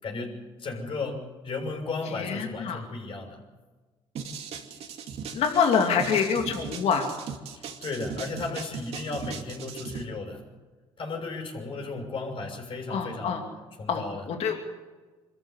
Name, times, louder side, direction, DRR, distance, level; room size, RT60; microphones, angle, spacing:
voice 1, 0.0-3.4 7.5-10.4 11.0-13.4 13.8-14.2, left 3 dB, 50° left, 2 dB, 6.7 m, -35 dB
voice 2, 2.0-2.8 5.3-7.1 12.9-13.4 13.9-14.5, left 6 dB, 65° left, 3 dB, 2.6 m, -26 dB
sound 1, 4.2-10.0, right 6 dB, 65° right, 2.6 m, -38 dB
24.0 x 14.0 x 8.2 m, 1.3 s
supercardioid pair, 75°, 12 cm